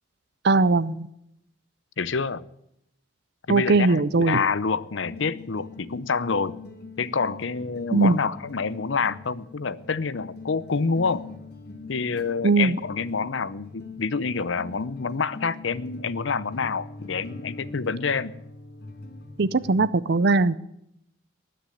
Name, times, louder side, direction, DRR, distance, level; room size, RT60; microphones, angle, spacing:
voice 1, 0.4-1.1 3.5-4.4 7.9-8.2 12.4-12.7 19.4-20.5, right 3 dB, 55° right, 16 dB, 0.6 m, -20 dB
voice 2, 2.0-2.4 3.5-6.5 7.0-11.2 11.9-18.3, left 5 dB, 70° left, 18 dB, 0.7 m, -27 dB
sound 1, 5.0-19.8, left 3 dB, 55° left, 2.5 m, -43 dB
20.0 x 6.9 x 10.0 m, 0.79 s
head